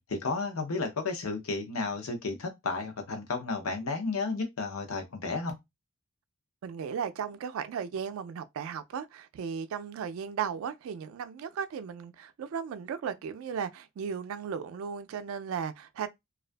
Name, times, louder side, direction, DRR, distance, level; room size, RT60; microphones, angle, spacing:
voice 1, 0.1-5.6, left 3 dB, 85° left, 0.7 m, -32 dB
voice 2, 6.6-16.1, right 7 dB, 75° right, 0.3 m, -36 dB
2.4 x 2.3 x 2.2 m
head